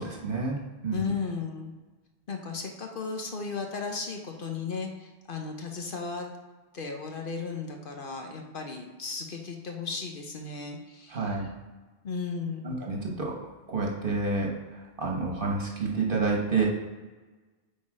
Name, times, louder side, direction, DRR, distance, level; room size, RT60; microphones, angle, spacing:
voice 1, 0.0-1.0 11.1-11.5 12.6-13.3 13.7-14.5 15.0-16.7, right 4 dB, 55° right, -1 dB, 1.5 m, -29 dB
voice 2, 0.9-1.7 2.3-6.3 6.7-11.4 12.0-12.8, left 4 dB, 55° left, 3 dB, 1.0 m, -35 dB
8.0 x 4.0 x 5.0 m, 1.3 s
omnidirectional pair, 1.1 m